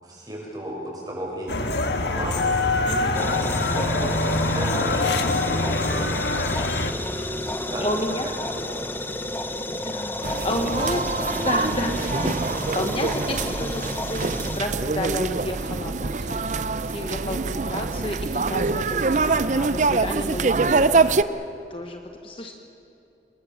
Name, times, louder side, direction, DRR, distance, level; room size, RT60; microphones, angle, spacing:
voice 1, 0.0-3.3 3.6-4.9 5.2-6.6 7.3-8.0 8.2-8.6 9.0-9.3 10.3-10.7, right 1 dB, 20° right, -3 dB, 6.9 m, -35 dB
sound 1, 1.5-6.9, left 2 dB, 70° left, 1.6 m, -24 dB
voice 2, 2.8-3.5 7.8-8.3 9.6-12.3 12.7-22.5, left 1 dB, 30° left, 4 dB, 1.1 m, -31 dB
sound 2, 3.1-14.6, left 1 dB, 10° left, 0.9 m, -31 dB
sound 3, 10.2-21.2, right 4 dB, 40° right, 0.5 m, -24 dB
28.0 x 20.0 x 7.3 m, 2.8 s
head